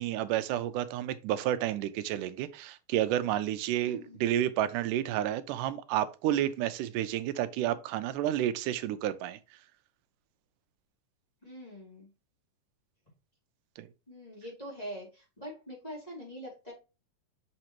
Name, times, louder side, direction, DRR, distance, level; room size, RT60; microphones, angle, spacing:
voice 1, 0.0-9.4 13.8-13.9, right 12 dB, 90° right, 2.2 m, -30 dB
voice 2, 3.8-4.2 11.4-12.1 14.1-16.7, equal, 15° left, 2.6 m, -44 dB
6.4 x 5.8 x 3.0 m
omnidirectional pair, 3.6 m